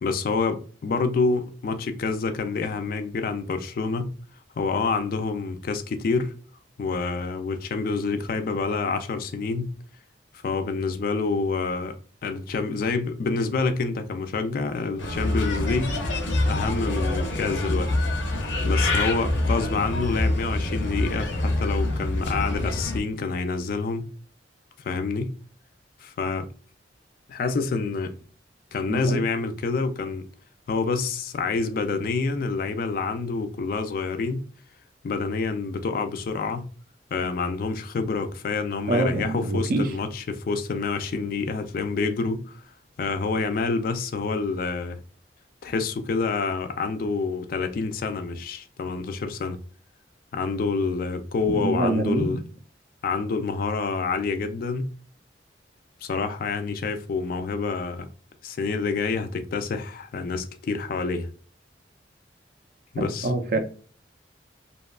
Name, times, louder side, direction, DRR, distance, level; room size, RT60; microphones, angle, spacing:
voice 1, 0.0-4.1 4.6-6.3 6.8-9.7 10.4-12.0 12.2-16.0 16.5-17.9 18.6-24.1 24.8-25.3 26.0-26.5 27.3-28.1 28.7-30.3 30.7-34.5 35.0-36.7 37.1-42.6 43.0-45.0 45.6-49.6 50.3-52.4 53.0-54.9 56.0-58.1 58.4-61.3 62.9-63.6, left 4 dB, 50° left, 0.3 m, -27 dB
Bird, 15.0-23.0, left 1 dB, 85° left, 0.6 m, -26 dB
voice 2, 28.9-29.2 38.9-39.9 51.5-52.4 63.2-63.6, right 2 dB, 50° right, 0.4 m, -25 dB
2.7 x 2.3 x 2.2 m
head